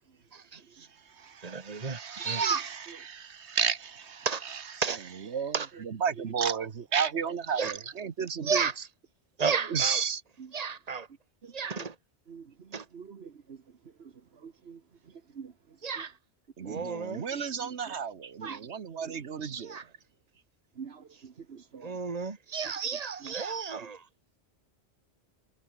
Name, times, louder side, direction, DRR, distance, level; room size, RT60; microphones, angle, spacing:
voice 1, 0.3-0.9 1.4-2.7 4.3-4.5 4.8-5.0 5.5-5.7 7.5-7.8 8.4-8.8 9.4-10.0 10.5-11.1 11.5-12.0 12.7-12.9 15.8-16.1 16.7-17.3 18.4-18.6 19.6-19.9 21.8-24.0, right 5 dB, 35° right, 1.7 m, -32 dB
voice 2, 1.2-2.8 3.0-4.6 5.3-5.5 5.8-8.7 9.7-10.2 16.6-19.8, right 6 dB, 90° right, 1.5 m, -33 dB
voice 3, 11.4-11.8 12.3-13.6 14.0-16.0 16.6-16.9 17.3-18.0 18.4-18.7 19.0-19.2 20.8-22.0 23.2-23.3 23.8-23.9, right 6 dB, 70° right, 1.5 m, -47 dB
omnidirectional pair, 1.1 m